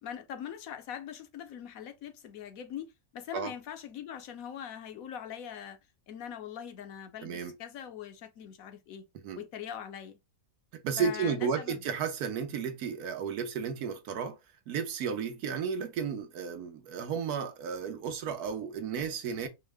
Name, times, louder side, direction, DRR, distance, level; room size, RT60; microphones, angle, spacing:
voice 1, 0.0-5.8 6.1-9.0 9.3-10.2 11.0-11.8, left 9 dB, 70° left, 1.1 m, -42 dB
voice 2, 7.2-7.5 9.2-9.4 10.7-14.4 14.7-19.5, right 6 dB, 80° right, 1.3 m, -33 dB
4.5 x 2.1 x 3.4 m
omnidirectional pair, 1.6 m